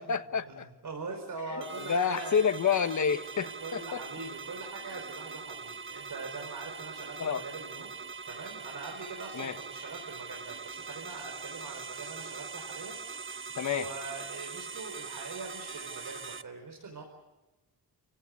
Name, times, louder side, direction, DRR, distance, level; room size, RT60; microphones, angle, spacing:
voice 1, 0.0-0.7 1.5-4.0 7.2-7.4 9.3-9.5 13.6-13.9, left 6 dB, 45° left, 1.3 m, -29 dB
voice 2, 0.8-2.5 3.6-7.9 8.3-17.0, right 3 dB, 50° right, 5.0 m, -43 dB
sound 1, 1.6-16.4, right 5 dB, 30° right, 0.8 m, -42 dB
29.5 x 17.0 x 9.7 m
wide cardioid pair, 135°, 40 cm